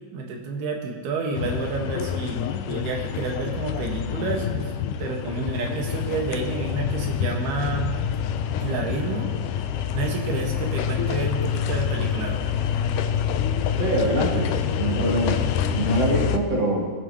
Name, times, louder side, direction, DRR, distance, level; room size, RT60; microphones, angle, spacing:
voice 1, 0.1-2.4 2.7-4.7 5.0-7.9 8.6-9.3 9.9-12.4, right 3 dB, 85° right, 1 dB, 3.6 m, -29 dB
sound 1, 1.3-16.4, left 8 dB, 90° left, 1.8 m, -27 dB
voice 2, 13.8-14.5 14.8-16.9, right 2 dB, 45° right, -3 dB, 3.0 m, -24 dB
22.0 x 11.0 x 3.0 m, 1.5 s
omnidirectional pair, 4.4 m